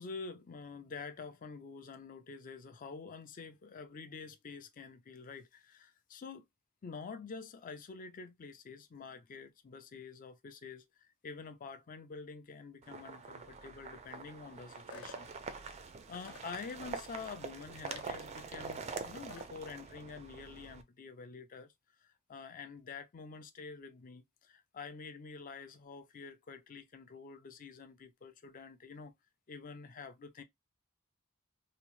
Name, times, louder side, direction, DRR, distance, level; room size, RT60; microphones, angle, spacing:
voice 1, 0.0-6.4 6.8-21.7 22.0-29.1 29.5-30.4, left 5 dB, 40° left, 0.4 m, -48 dB
sound 1, 12.8-20.8, right 5 dB, 30° right, 0.3 m, -45 dB
sound 2, 14.9-15.2 16.1-16.4 17.9-18.1 19.3-19.5, left 3 dB, 80° left, 0.7 m, -49 dB
2.8 x 2.0 x 3.0 m
head